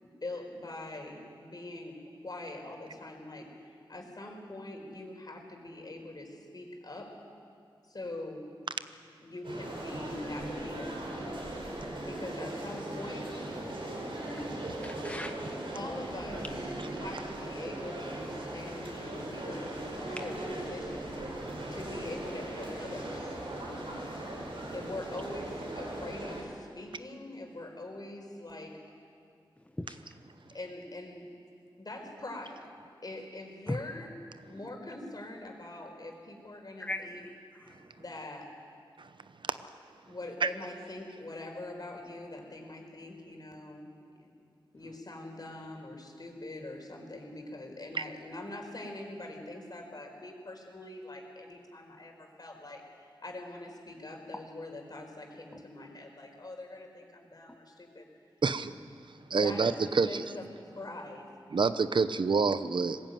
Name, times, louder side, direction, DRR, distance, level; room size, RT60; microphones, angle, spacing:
voice 1, 0.0-2.0 2.2-7.1 7.9-8.4 9.2-11.0 12.0-13.3 15.7-16.5 17.0-19.7 20.0-21.3 21.7-23.4 24.7-25.5 25.7-28.8 30.5-31.3 31.8-32.7 33.0-34.1 34.5-37.2 38.0-38.5 40.1-44.3 44.7-58.1 59.3-61.3, left 2 dB, 50° left, 2 dB, 4.7 m, -43 dB
sound 1, 9.4-26.4, right 1 dB, 80° right, 5.0 m, -38 dB
voice 2, 14.8-15.4 29.8-30.0 33.7-33.8 36.8-37.9, left 1 dB, 15° left, 6 dB, 1.1 m, -38 dB
voice 3, 58.4-58.7 59.1-60.2 61.5-63.0, right 4 dB, 65° right, 13 dB, 0.9 m, -28 dB
20.0 x 15.5 x 9.3 m, 2.3 s
cardioid pair, 45°, 9 cm